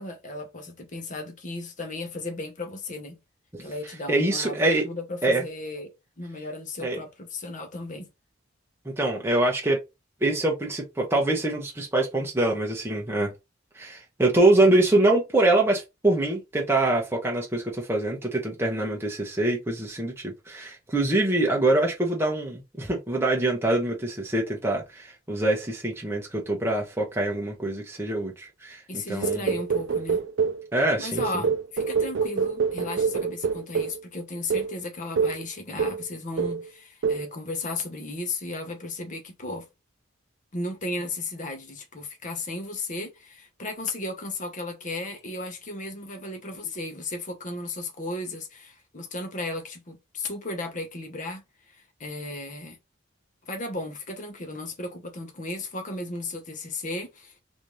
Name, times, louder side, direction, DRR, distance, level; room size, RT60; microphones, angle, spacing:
voice 1, 0.0-3.2 3.6-8.1 28.9-30.2 31.0-39.7 40.5-52.8 53.4-57.4, left 2 dB, 40° left, 0.9 m, -35 dB
voice 2, 4.1-4.8 5.2-5.4 6.8-7.0 8.8-9.8 10.2-13.3 13.7-28.8 29.1-29.5 30.7-31.2, right 2 dB, 10° right, 0.7 m, -24 dB
sound 1, 29.2-30.7 31.2-34.0 34.5-34.7 35.2-35.4 35.8-36.1 36.4-36.7 37.0-37.3, right 5 dB, 70° right, 0.4 m, -26 dB
3.3 x 2.6 x 3.0 m
head